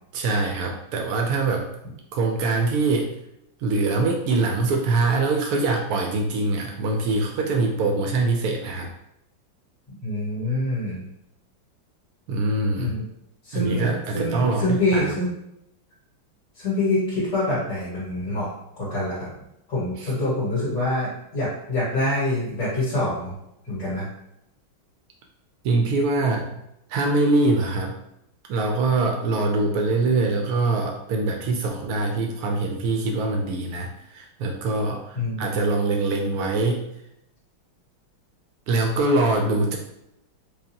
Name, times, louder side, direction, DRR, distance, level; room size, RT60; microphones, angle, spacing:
voice 1, 0.1-1.7 2.1-3.1 3.6-8.9 12.3-12.9 13.5-15.1 20.0-20.1 25.6-26.6 26.9-27.9 28.5-36.9 38.7-39.8, right 3 dB, 85° right, 1 dB, 0.8 m, -23 dB
voice 2, 10.0-11.0 12.8-13.1 13.4-15.3 16.6-18.5 18.8-19.3 19.7-23.3 23.6-24.1 35.1-35.6, left 1 dB, 60° left, -11 dB, 2.2 m, -25 dB
5.1 x 2.0 x 2.8 m, 0.81 s
omnidirectional pair, 2.2 m